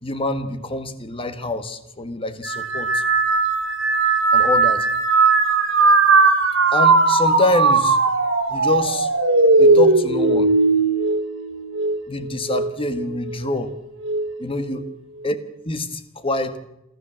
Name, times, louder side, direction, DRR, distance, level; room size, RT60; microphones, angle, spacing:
voice 1, 0.0-3.0 4.3-4.9 6.7-8.0 8.5-9.1 9.6-10.5 12.1-13.7 14.4-14.9 15.2-15.3 15.6-16.6, left 2 dB, 25° left, 10 dB, 1.6 m, -25 dB
sound 1, 2.4-12.0 12.5-13.1 14.0-14.4, right 3 dB, 75° right, 4.1 m, -18 dB
28.0 x 13.0 x 7.5 m, 0.86 s
head